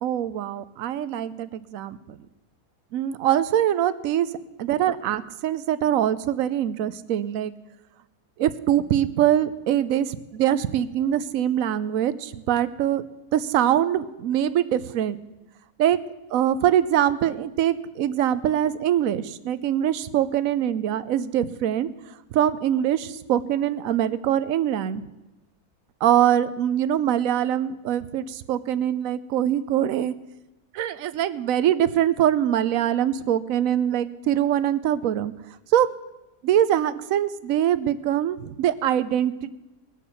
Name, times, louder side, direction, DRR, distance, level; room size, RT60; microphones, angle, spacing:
voice 1, 0.0-2.2 2.9-4.3 4.6-7.5 8.4-13.0 13.3-15.2 15.8-16.0 16.3-21.9 22.3-25.0 26.0-30.1 30.7-35.3 35.7-35.9 36.4-39.5, right 11 dB, 70° right, 14 dB, 1.1 m, -23 dB
19.5 x 7.2 x 7.0 m, 0.99 s
omnidirectional pair, 1.5 m